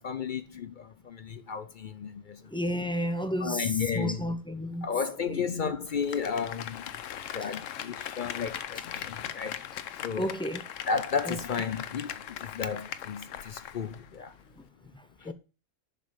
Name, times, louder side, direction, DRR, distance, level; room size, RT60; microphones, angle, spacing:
voice 1, 0.0-2.4 3.4-4.3 4.8-6.9 7.2-9.6 10.0-10.3 10.9-14.3 15.2-15.3, left 6 dB, 55° left, 0.6 m, -33 dB
voice 2, 2.5-4.9 5.3-5.4 10.2-10.6 11.3-11.4 15.3-15.4, equal, 5° left, 0.7 m, -31 dB
Applause, 5.9-14.1 14.4-14.5, left 10 dB, 85° left, 1.1 m, -40 dB
7.2 x 5.4 x 7.2 m
omnidirectional pair, 1.3 m